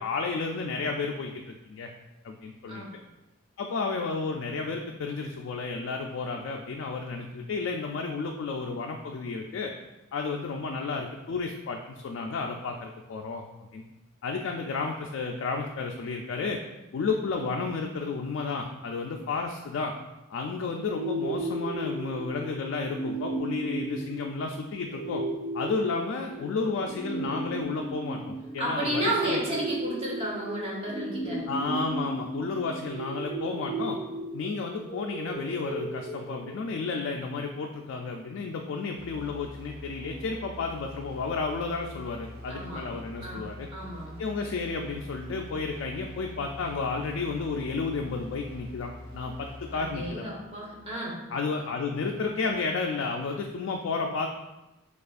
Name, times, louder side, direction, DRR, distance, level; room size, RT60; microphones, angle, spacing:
voice 1, 0.0-1.3 1.6-1.9 2.2-2.8 3.6-9.7 10.1-13.4 13.7-13.8 14.2-16.6 16.9-19.9 20.3-25.2 25.5-29.4 31.5-34.0 34.3-43.7 44.2-50.2 51.3-54.3, left 4 dB, 65° left, 1 dB, 0.3 m, -32 dB
sound 1, 20.9-36.9, right 2 dB, 10° left, 0.9 m, -35 dB
voice 2, 28.6-31.5 42.5-42.8 43.2-44.1 49.7-51.2, right 1 dB, 30° right, -4 dB, 1.1 m, -32 dB
sound 2, 39.0-50.9, left 1 dB, 55° right, 0.8 m, -45 dB
6.6 x 2.4 x 2.4 m, 1.0 s
head